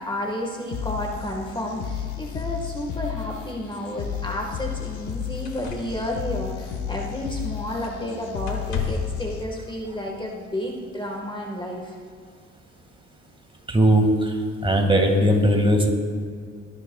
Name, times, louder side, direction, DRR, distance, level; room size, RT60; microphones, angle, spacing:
voice 1, 0.0-12.0, left 1 dB, 15° left, 0 dB, 1.4 m, -31 dB
sound 1, 0.7-9.7, left 9 dB, 80° left, 1.1 m, -33 dB
sound 2, 4.9-5.0 5.4-7.4 7.8-8.1 8.4-9.2 10.3-10.4, left 6 dB, 60° left, 1.8 m, -34 dB
voice 2, 13.7-14.3 14.6-15.9, right 1 dB, 15° right, 3 dB, 1.8 m, -18 dB
20.5 x 10.5 x 2.3 m, 2.1 s
cardioid pair, 90°, 30 cm